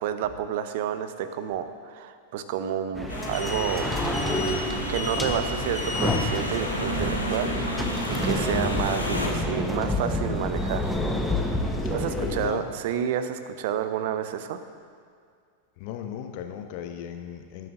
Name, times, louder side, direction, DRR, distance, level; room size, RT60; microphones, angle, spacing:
voice 1, 0.0-4.0 4.9-11.0 11.5-14.6, right 9 dB, 50° right, 11 dB, 0.6 m, -30 dB
sound 1, 2.9-12.5, left 1 dB, ahead, 1.0 m, -28 dB
sound 2, 3.1-9.3, left 1 dB, 85° left, 1.3 m, -33 dB
sound 3, 6.7-11.7, right 8 dB, 75° right, 1.6 m, -38 dB
voice 2, 11.8-12.6 15.8-17.7, left 9 dB, 45° left, 6 dB, 0.8 m, -36 dB
18.5 x 9.1 x 2.6 m, 2.2 s
figure-of-eight pair, 90°, 0 cm